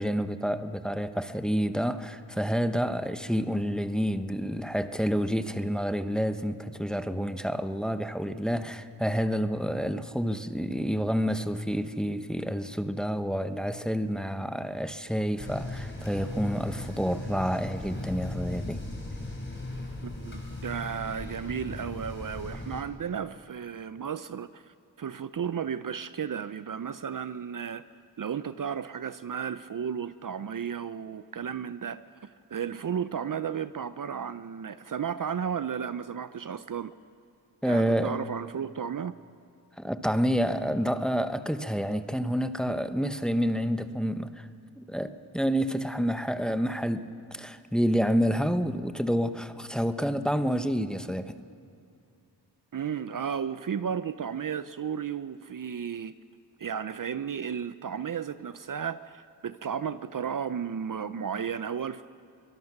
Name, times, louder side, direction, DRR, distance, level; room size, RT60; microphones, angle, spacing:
voice 1, 0.0-18.8 37.6-38.2 39.8-44.5 44.8-51.4, equal, ahead, 10 dB, 1.0 m, -29 dB
sound 1, 15.4-22.8, left 2 dB, 30° left, 3.6 m, -37 dB
voice 2, 20.0-27.8 28.2-36.9 37.6-39.1 52.7-56.1 56.6-62.1, right 7 dB, 50° right, 13 dB, 0.6 m, -34 dB
23.5 x 19.5 x 6.0 m, 2.4 s
cardioid pair, 55°, 41 cm